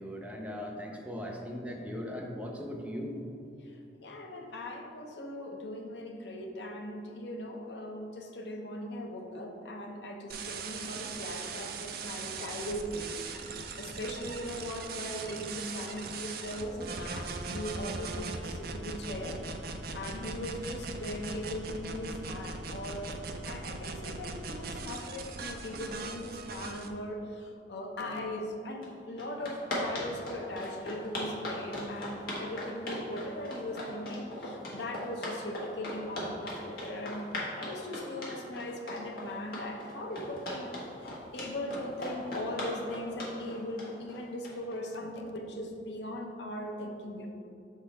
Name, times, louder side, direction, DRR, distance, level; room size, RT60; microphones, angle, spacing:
voice 1, 0.0-3.2, equal, 5° right, -1 dB, 0.5 m, -39 dB
voice 2, 4.0-13.2 13.5-23.2 23.5-47.3, left 1 dB, 70° left, 2 dB, 0.7 m, -39 dB
sound 1, 10.3-26.9, right 4 dB, 55° right, 0.4 m, -39 dB
sound 2, 28.8-28.9 29.2-44.8, left 1 dB, 55° left, 1.4 m, -38 dB
6.5 x 3.7 x 4.1 m, 2.7 s
head